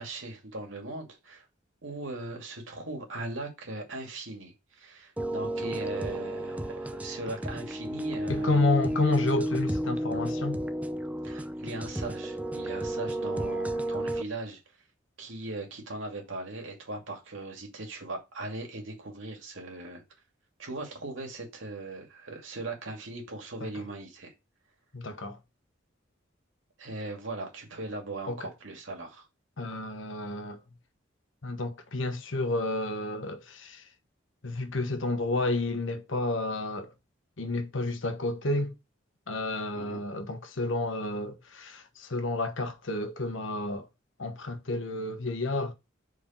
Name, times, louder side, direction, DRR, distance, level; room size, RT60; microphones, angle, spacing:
voice 1, 0.0-1.4 1.8-8.6 11.2-14.6 15.2-20.0 20.6-24.3 26.8-29.3 39.7-40.0, right 2 dB, 85° right, 2.4 m, -39 dB
sound 1, 5.2-14.2, right 1 dB, 10° right, 0.5 m, -32 dB
voice 2, 8.3-10.7 23.6-23.8 24.9-25.4 28.3-28.5 29.6-30.6 31.4-33.9 34.4-36.9 37.4-38.7 39.3-43.9 44.2-45.7, left 2 dB, 90° left, 1.2 m, -30 dB
4.7 x 4.6 x 5.7 m
head